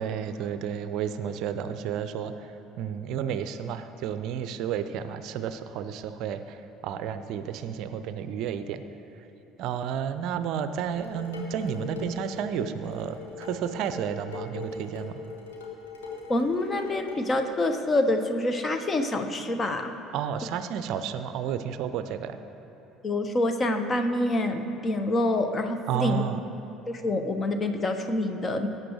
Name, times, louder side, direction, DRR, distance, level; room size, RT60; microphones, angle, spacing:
voice 1, 0.0-2.5 2.8-8.8 9.6-15.2 20.1-22.4 25.9-26.4, right 8 dB, 55° right, 11 dB, 0.5 m, -31 dB
Dishes pots and pans, 10.9-17.5, left 4 dB, 75° left, 1.6 m, -41 dB
voice 2, 16.3-19.9 23.0-26.2 26.9-28.7, left 1 dB, 30° left, 7 dB, 1.0 m, -26 dB
19.0 x 9.0 x 3.1 m, 2.9 s
figure-of-eight pair, 60°, 0 cm